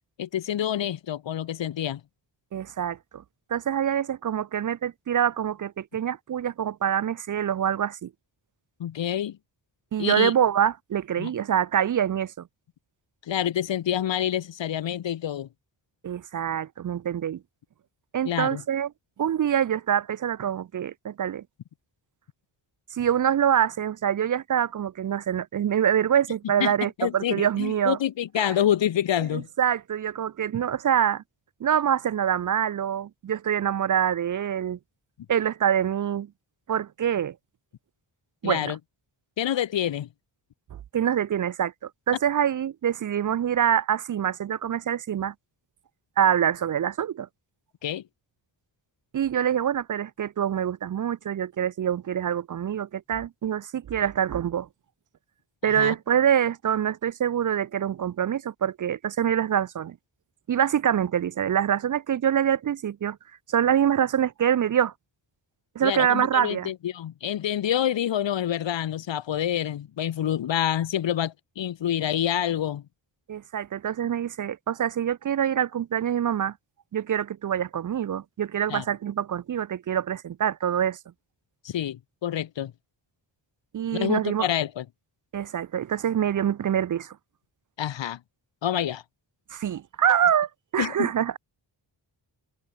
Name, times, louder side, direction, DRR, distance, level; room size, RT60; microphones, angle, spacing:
voice 1, 0.2-2.0 8.8-9.4 10.0-10.3 11.2-11.3 13.3-15.5 18.2-18.6 26.6-26.7 27.0-29.5 38.4-38.8 39.4-40.1 47.8-48.0 55.6-55.9 65.8-72.8 78.7-78.8 81.6-82.7 83.9-84.8 87.8-88.2 88.6-89.0 90.8-91.1, left 10 dB, 75° left, 1.1 m, -27 dB
voice 2, 2.5-3.2 3.5-8.1 9.9-12.5 16.0-17.4 18.1-18.9 19.2-21.4 22.9-28.0 28.4-28.5 29.3-31.2 31.6-34.8 35.3-36.3 36.7-37.4 38.4-38.7 40.7-45.3 46.2-47.3 49.1-54.7 55.6-60.0 60.5-63.2 63.5-64.9 65.8-66.7 73.3-76.5 76.9-81.0 83.7-84.5 85.3-87.2 89.5-91.4, right 9 dB, 45° right, 0.4 m, -25 dB
open air
wide cardioid pair, 150°, 44 cm